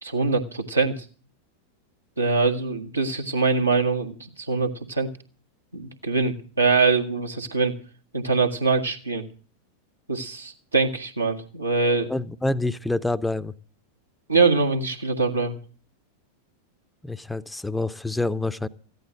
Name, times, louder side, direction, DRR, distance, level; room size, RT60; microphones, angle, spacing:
voice 1, 0.0-1.0 2.2-5.1 5.7-7.8 8.1-9.3 10.1-12.1 14.3-15.6, right 4 dB, 80° right, 4 dB, 1.7 m, -23 dB
voice 2, 12.1-13.5 17.0-18.7, left 2 dB, 5° left, 14 dB, 0.6 m, -27 dB
15.0 x 11.0 x 6.4 m, 0.40 s
figure-of-eight pair, 90°, 0 cm